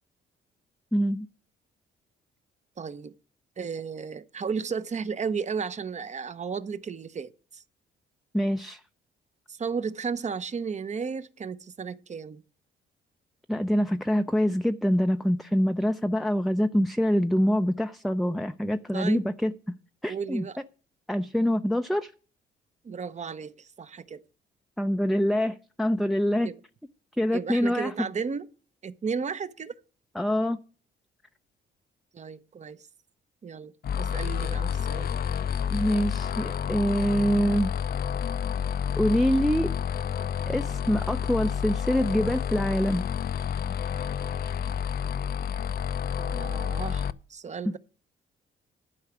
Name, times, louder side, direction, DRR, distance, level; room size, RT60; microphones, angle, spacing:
voice 1, 0.9-1.3 8.3-8.8 13.5-19.5 20.0-20.4 21.1-22.1 24.8-26.5 27.2-28.1 30.1-30.6 35.7-37.7 39.0-39.7 40.5-43.0, equal, ahead, 0.5 m, -25 dB
voice 2, 2.8-3.1 3.6-7.6 9.5-12.4 18.9-19.3 20.1-20.6 22.8-24.2 26.4-26.5 27.3-28.5 28.8-29.7 32.1-32.8 33.4-35.1 46.2-47.8, right 5 dB, 35° right, 0.8 m, -34 dB
sound 1, 33.8-47.1, left 8 dB, 50° left, 0.5 m, -29 dB
12.0 x 4.9 x 8.1 m
cardioid pair, 90°, 20 cm